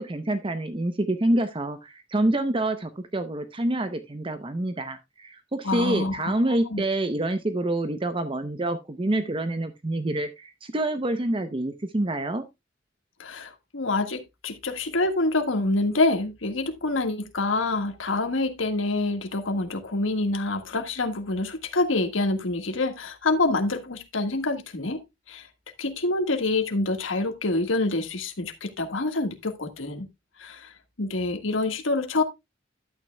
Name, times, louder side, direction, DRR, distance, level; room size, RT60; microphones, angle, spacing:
voice 1, 0.0-12.4, right 1 dB, 25° right, 0.7 m, -27 dB
voice 2, 5.6-6.3 6.7-6.8 13.2-25.0 25.3-25.5 25.8-30.1 30.4-30.7 31.0-32.2, left 2 dB, 90° left, 1.6 m, -26 dB
12.0 x 9.1 x 2.2 m
head